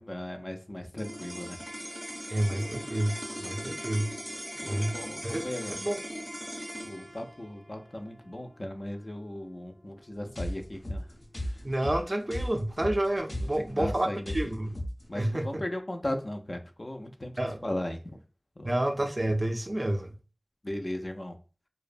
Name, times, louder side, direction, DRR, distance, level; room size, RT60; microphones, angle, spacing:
voice 1, 0.0-1.6 4.6-5.7 6.8-11.1 13.7-14.3 15.1-17.3 17.6-18.2 18.6-18.7 20.6-21.4, left 1 dB, 50° left, 0.4 m, -37 dB
sound 1, 0.9-11.4, equal, ahead, 0.6 m, -40 dB
voice 2, 2.3-4.1 4.7-6.0 11.6-14.8 15.1-15.6 17.4-17.6 18.6-20.2, right 1 dB, 35° right, 0.3 m, -30 dB
sound 2, 10.4-15.1, equal, 90° left, 1.0 m, -36 dB
2.6 x 2.0 x 2.4 m
wide cardioid pair, 45°, 0 cm